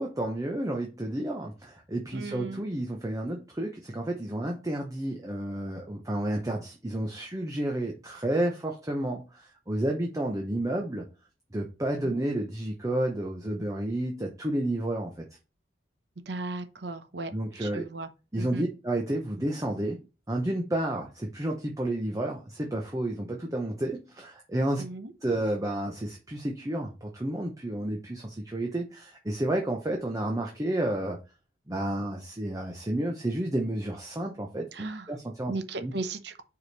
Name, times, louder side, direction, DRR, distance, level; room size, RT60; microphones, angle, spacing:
voice 1, 0.0-11.0 11.5-15.2 17.3-17.9 18.3-20.0 20.3-24.8 25.2-31.2 31.7-35.5 35.8-35.9, right 1 dB, 15° right, 0.7 m, -31 dB
voice 2, 2.1-2.6 12.0-12.3 16.3-17.3 17.6-18.1 18.4-18.6 24.8-25.1 34.7-35.1 35.5-36.4, right 3 dB, 60° right, 0.9 m, -36 dB
5.0 x 4.7 x 4.1 m
head